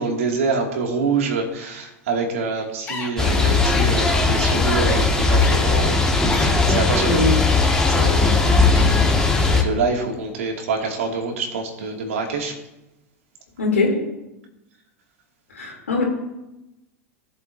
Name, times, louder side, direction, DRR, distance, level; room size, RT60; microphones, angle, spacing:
voice 1, 0.0-7.2 7.9-12.6, right 4 dB, 70° right, 1 dB, 2.4 m, -26 dB
sound 1, 2.9-3.1 4.0-4.2 5.4-5.5 6.3-6.5 7.2-8.1 8.7-8.8, left 4 dB, 25° left, 3.8 m, -33 dB
sound 2, 3.2-9.6, left 3 dB, 10° left, 2.0 m, -18 dB
voice 2, 7.0-7.3 13.6-14.0 15.5-16.0, left 3 dB, 80° left, -1 dB, 3.2 m, -21 dB
18.0 x 7.8 x 2.8 m, 0.96 s
hypercardioid pair, 90°, 8 cm